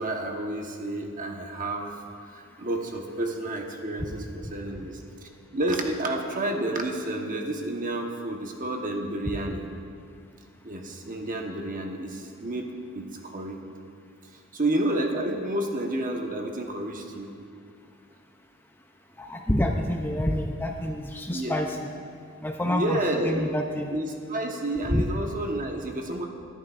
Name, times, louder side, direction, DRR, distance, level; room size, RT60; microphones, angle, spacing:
voice 1, 0.0-1.9 2.3-5.0 5.5-9.6 10.6-13.6 14.5-17.3 20.1-20.2 21.3-21.6 22.6-23.5 23.9-26.3, right 1 dB, 40° right, 2 dB, 1.2 m, -30 dB
voice 2, 19.2-21.9 22.4-23.0 23.2-23.9 24.9-25.0, left 1 dB, 10° left, 2 dB, 0.5 m, -27 dB
22.0 x 11.0 x 2.5 m, 2.3 s
head